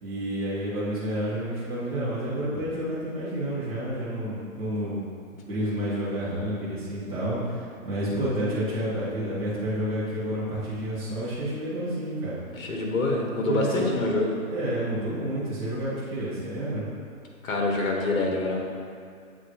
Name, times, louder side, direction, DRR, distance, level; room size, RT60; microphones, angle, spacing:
voice 1, 0.0-5.1 5.4-12.4 13.4-13.8 14.5-16.9, right 1 dB, 10° right, -11 dB, 1.0 m, -30 dB
voice 2, 12.5-14.4 17.4-18.6, left 2 dB, 65° left, 0 dB, 1.3 m, -26 dB
7.8 x 4.0 x 3.0 m, 2.4 s
hypercardioid pair, 160°, 43 cm